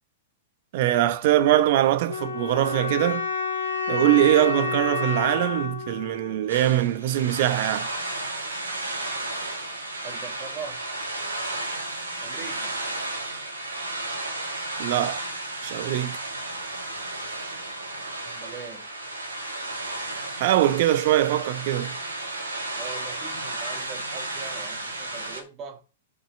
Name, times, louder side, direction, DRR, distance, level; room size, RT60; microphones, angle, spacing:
voice 1, 0.7-3.3 3.9-7.9 14.8-15.2 15.6-16.2 20.4-22.0, right 13 dB, 55° right, 0.9 m, -22 dB
sound 1, 2.1-7.1, left 5 dB, 80° left, 2.1 m, -30 dB
sound 2, 6.5-25.4, right 2 dB, 90° right, 2.3 m, -33 dB
voice 2, 10.0-10.8 12.2-12.8 18.3-18.9 22.7-25.8, right 6 dB, 30° right, 2.2 m, -41 dB
6.0 x 5.4 x 6.7 m
figure-of-eight pair, 105°, 0 cm